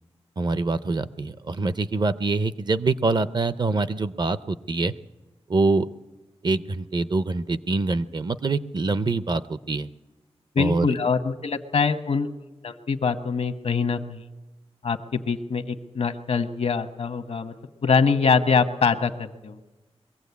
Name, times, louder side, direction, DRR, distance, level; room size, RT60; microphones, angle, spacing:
voice 1, 0.4-4.9 5.5-5.9 6.4-9.9 10.6-10.9, right 3 dB, 40° right, 13 dB, 0.6 m, -25 dB
voice 2, 10.5-12.3 12.6-14.2 14.8-17.5 17.8-19.6, left 5 dB, 70° left, 8 dB, 1.1 m, -24 dB
22.5 x 15.5 x 8.3 m, 1.1 s
wide cardioid pair, 125°, 11 cm